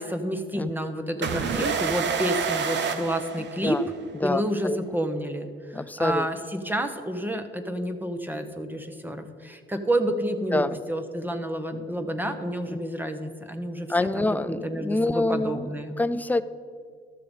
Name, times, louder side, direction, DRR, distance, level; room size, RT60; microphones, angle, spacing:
voice 1, 0.0-3.8 4.2-16.0, right 1 dB, 10° right, 7 dB, 1.0 m, -29 dB
voice 2, 0.5-0.9 3.6-3.8 4.2-4.8 5.7-6.3 10.5-10.8 12.7-12.8 13.9-15.7 16.0-16.4, left 2 dB, 10° left, 12 dB, 0.4 m, -26 dB
sound 1, 1.2-4.0, right 6 dB, 65° right, 0.9 m, -28 dB
13.0 x 6.8 x 5.3 m, 2.1 s
cardioid pair, 90°, 20 cm